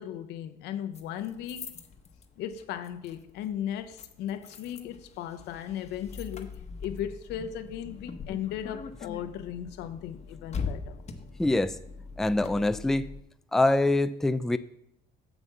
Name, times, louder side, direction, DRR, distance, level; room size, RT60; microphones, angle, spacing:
voice 1, 0.0-1.7 2.4-6.5 6.8-11.0, left 10 dB, 90° left, 0.9 m, -36 dB
sound 1, 0.9-13.2, left 5 dB, 40° left, 1.1 m, -42 dB
voice 2, 11.4-11.7 12.2-13.1 13.5-14.6, left 2 dB, 5° left, 0.4 m, -24 dB
8.1 x 5.2 x 7.5 m
cardioid pair, 110°, 17 cm